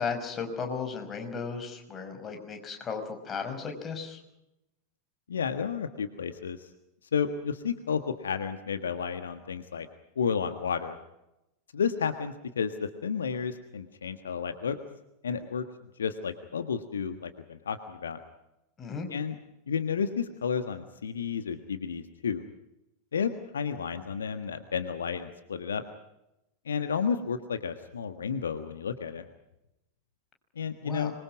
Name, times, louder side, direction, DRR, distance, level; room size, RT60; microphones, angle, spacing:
voice 1, 0.0-4.2 18.8-19.1 30.8-31.1, left 5 dB, 25° left, 5 dB, 5.6 m, -35 dB
voice 2, 5.3-6.7 7.1-9.9 10.1-11.0 11.7-14.8 15.2-15.6 16.0-18.2 19.1-19.3 19.7-22.4 23.1-25.8 26.6-29.2 30.5-31.1, left 6 dB, 70° left, 9 dB, 1.5 m, -31 dB
26.0 x 22.5 x 6.1 m, 0.89 s
figure-of-eight pair, 90°, 0 cm